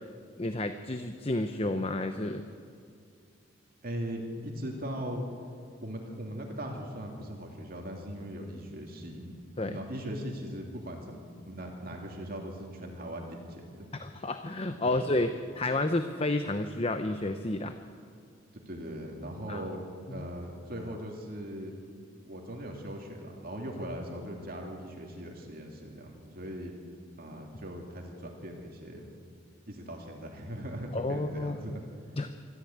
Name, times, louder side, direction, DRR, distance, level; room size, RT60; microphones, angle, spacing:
voice 1, 0.4-2.4 9.6-9.8 14.0-17.7 19.5-19.7 20.1-20.2 30.9-31.8 32.2-32.3, left 2 dB, 30° left, 8 dB, 0.7 m, -31 dB
voice 2, 3.8-5.2 5.8-9.3 9.6-11.2 11.5-13.9 14.8-15.0 18.5-19.8 20.1-21.8 22.2-26.7 27.2-29.1 29.7-31.8, equal, 45° right, 1 dB, 2.8 m, -39 dB
24.5 x 14.0 x 8.7 m, 2.3 s
head